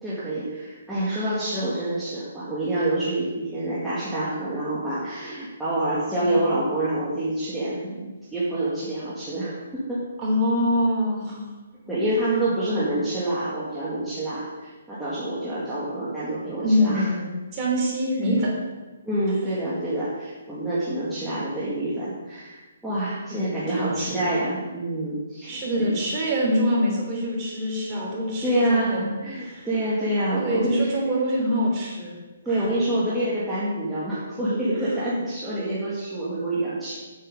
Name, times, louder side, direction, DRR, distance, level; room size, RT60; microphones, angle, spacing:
voice 1, 0.0-10.1 11.9-17.1 19.0-25.9 28.4-30.9 32.4-37.0, right 1 dB, 5° right, -12 dB, 2.0 m, -27 dB
voice 2, 10.2-11.4 16.6-18.5 23.3-24.3 25.5-29.0 29.4-29.7 30.4-32.2 32.5-32.7, equal, 25° right, -3 dB, 3.1 m, -25 dB
8.3 x 7.5 x 5.4 m, 1.2 s
hypercardioid pair, 155°, 0 cm